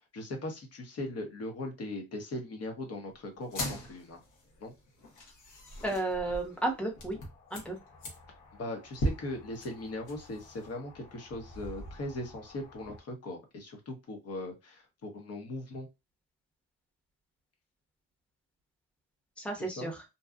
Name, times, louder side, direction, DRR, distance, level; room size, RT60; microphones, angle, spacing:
voice 1, 0.1-4.2 4.6-4.7 8.6-15.9 19.6-19.9, left 1 dB, 55° left, 4 dB, 1.0 m, -39 dB
sound 1, 3.4-13.0, equal, 80° left, 1.1 m, -41 dB
voice 2, 5.8-7.2 7.5-7.8 19.4-20.0, right 2 dB, 5° left, 2 dB, 0.8 m, -33 dB
2.7 x 2.3 x 2.4 m, 0.23 s
cardioid pair, 90°, 30 cm